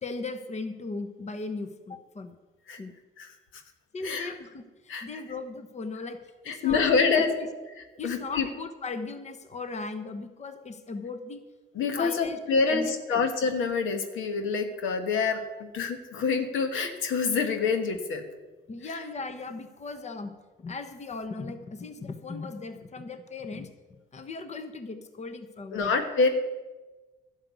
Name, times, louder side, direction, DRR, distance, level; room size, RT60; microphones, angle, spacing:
voice 1, 0.0-2.3 2.8-2.9 3.9-7.5 8.0-11.4 12.0-13.2 15.5-15.6 18.7-25.9, left 3 dB, 35° left, 9 dB, 1.1 m, -38 dB
voice 2, 6.5-7.3 8.0-8.5 11.7-18.2 25.7-26.3, left 5 dB, 80° left, 7 dB, 1.5 m, -26 dB
12.0 x 6.5 x 9.4 m, 1.2 s
cardioid pair, 90°, 20 cm